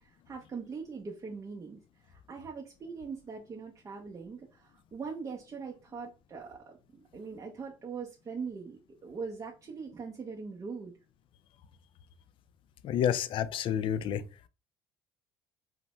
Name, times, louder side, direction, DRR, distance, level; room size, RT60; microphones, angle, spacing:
voice 1, 0.0-6.7 7.1-10.9, right 5 dB, 30° right, 0.6 m, -41 dB
voice 2, 12.8-14.2, left 9 dB, 55° left, 0.3 m, -29 dB
2.6 x 2.1 x 3.1 m
supercardioid pair, 75°, 11 cm